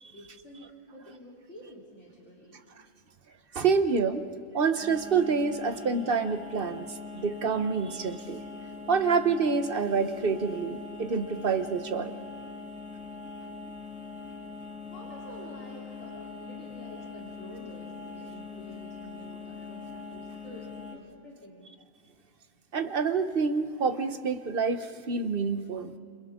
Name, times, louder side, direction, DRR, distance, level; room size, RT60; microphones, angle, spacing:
voice 1, 0.1-2.6 14.9-21.7, equal, 60° left, -7 dB, 3.8 m, -48 dB
voice 2, 3.5-4.2 4.5-8.4 8.9-12.1 22.7-25.9, right 5 dB, 45° right, 8 dB, 1.2 m, -27 dB
sound 1, 4.8-21.0, left 4 dB, 5° right, 2.0 m, -42 dB
29.5 x 28.0 x 3.7 m, 2.4 s
omnidirectional pair, 1.3 m